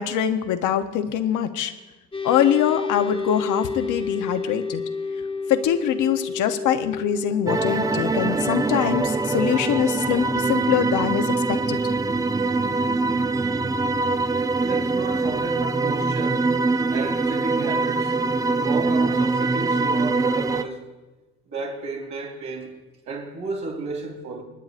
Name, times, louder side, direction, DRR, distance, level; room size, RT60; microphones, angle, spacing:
voice 1, 0.0-1.7 2.2-4.8 5.5-11.8, left 9 dB, 85° left, 8 dB, 0.8 m, -23 dB
sound 1, 2.1-16.9, left 4 dB, 15° left, 1.0 m, -33 dB
sound 2, 7.5-20.6, right 3 dB, 10° right, 0.3 m, -23 dB
voice 2, 14.6-16.4 16.9-18.2 18.5-20.8 21.5-22.7 23.0-24.4, right 3 dB, 80° right, -3 dB, 3.4 m, -32 dB
27.0 x 9.3 x 2.5 m, 1.2 s
cardioid pair, 90°, 30 cm